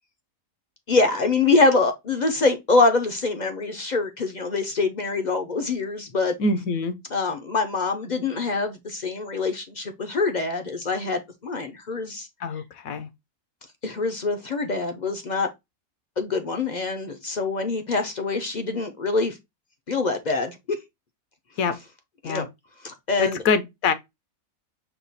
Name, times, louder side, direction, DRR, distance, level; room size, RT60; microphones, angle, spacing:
voice 1, 0.9-6.3 7.1-12.3 13.8-15.5 16.2-19.4 19.9-20.8 22.2-22.5 22.8-23.4, left 3 dB, 50° left, 0.5 m, -24 dB
voice 2, 6.4-7.0 12.4-13.1 21.6-21.8 22.2-22.5 23.2-23.9, left 4 dB, 75° left, 1.2 m, -24 dB
5.7 x 2.3 x 3.9 m
omnidirectional pair, 1.5 m